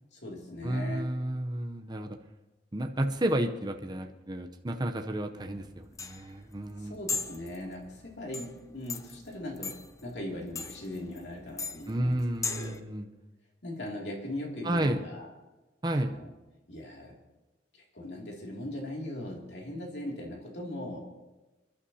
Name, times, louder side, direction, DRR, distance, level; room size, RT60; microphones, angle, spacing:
voice 1, 0.1-1.1 6.8-12.8 13.6-15.3 15.9-16.3 16.7-17.2 17.7-21.1, left 1 dB, 70° left, -1 dB, 2.5 m, -39 dB
voice 2, 0.6-2.2 2.7-7.0 11.9-13.1 14.6-15.0 15.8-16.1, right 1 dB, 25° right, 5 dB, 0.7 m, -31 dB
sound 1, 5.4-12.8, left 4 dB, 20° left, 0.6 m, -39 dB
28.0 x 11.5 x 2.8 m, 1.1 s
head